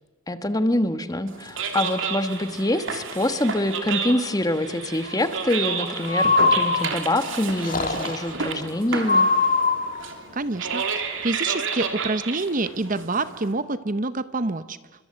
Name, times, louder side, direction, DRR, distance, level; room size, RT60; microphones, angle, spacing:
voice 1, 0.3-9.3, left 1 dB, 15° left, 10 dB, 1.3 m, -25 dB
sound 1, 1.3-13.5, right 5 dB, 60° right, 3.2 m, -31 dB
Breathing, 6.0-7.2 7.6-8.3 9.0-10.1, left 3 dB, 35° left, 2.1 m, -22 dB
voice 2, 10.3-14.8, right 2 dB, 35° right, 13 dB, 0.8 m, -27 dB
29.5 x 25.0 x 7.7 m, 1.2 s
head